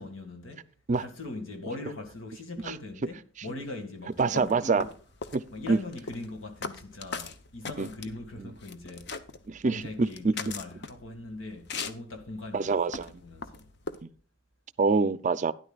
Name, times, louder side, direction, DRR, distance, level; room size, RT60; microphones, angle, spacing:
voice 1, 0.0-4.9 5.5-9.1 9.6-12.7 13.1-13.7, left 2 dB, 85° left, 2.0 m, -41 dB
sound 1, 4.2-14.0, left 4 dB, 55° left, 0.8 m, -40 dB
voice 2, 4.2-4.8 5.3-5.4 5.7-5.8 7.8-7.9 8.4-8.5 9.5-10.3 12.5-13.1 14.0-14.1 14.8-15.5, right 4 dB, 40° right, 0.4 m, -25 dB
12.5 x 10.5 x 2.4 m
head